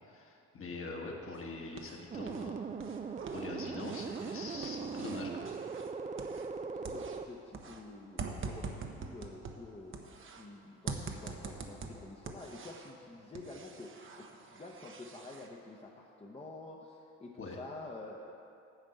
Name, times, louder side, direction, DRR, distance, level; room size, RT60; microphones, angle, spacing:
voice 1, 0.1-2.6 2.9-5.6 17.4-17.6, left 3 dB, 45° left, 0 dB, 1.5 m, -44 dB
sound 1, 1.3-2.5 2.7-6.6 6.8-10.5 10.9-13.0 13.4-15.5, right 4 dB, 40° right, 0.9 m, -45 dB
sound 2, 2.1-7.3, right 5 dB, 25° right, 0.4 m, -40 dB
voice 2, 6.6-18.3, left 2 dB, 20° left, -1 dB, 0.8 m, -49 dB
9.1 x 5.1 x 7.8 m, 2.6 s
cardioid pair, 90°, 30 cm